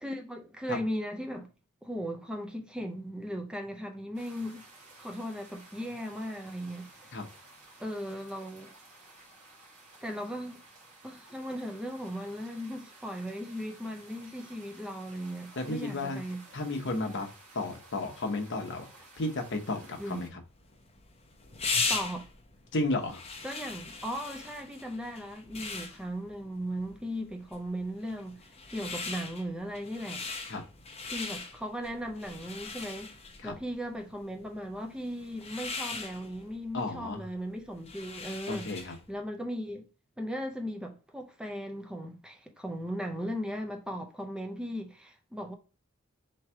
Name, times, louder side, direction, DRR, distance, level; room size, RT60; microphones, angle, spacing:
voice 1, 0.0-1.5 1.8-4.6 5.0-7.2 7.8-8.7 10.0-10.6 11.0-16.4 20.0-20.4 21.9-22.3 23.4-30.2 31.0-33.1 33.4-38.7 39.1-39.9 40.2-45.5, equal, 5° right, 0.5 m, -37 dB
sound 1, 4.1-20.3, right 2 dB, 35° right, 1.4 m, -54 dB
voice 2, 15.6-16.2 16.5-18.9 19.2-20.4 22.7-23.2 30.5-30.6 33.4-33.5 36.7-37.3 38.5-39.0, left 2 dB, 60° left, 0.9 m, -33 dB
sound 2, 20.5-39.1, left 4 dB, 30° left, 0.7 m, -39 dB
3.5 x 3.2 x 4.2 m
head